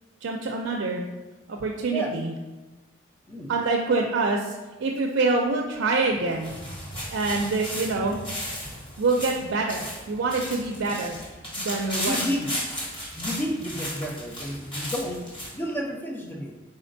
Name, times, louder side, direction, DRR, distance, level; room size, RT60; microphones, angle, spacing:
voice 1, 0.2-1.1 1.5-2.3 3.5-6.5 7.1-8.2 9.0-11.2 11.6-12.2, right 3 dB, 90° right, 0 dB, 0.4 m, -26 dB
sound 1, 6.1-15.6, equal, 25° left, 1.0 m, -35 dB
voice 2, 12.0-12.5 13.2-16.6, equal, 10° left, 1 dB, 0.4 m, -31 dB
4.2 x 3.8 x 2.6 m, 1.2 s
head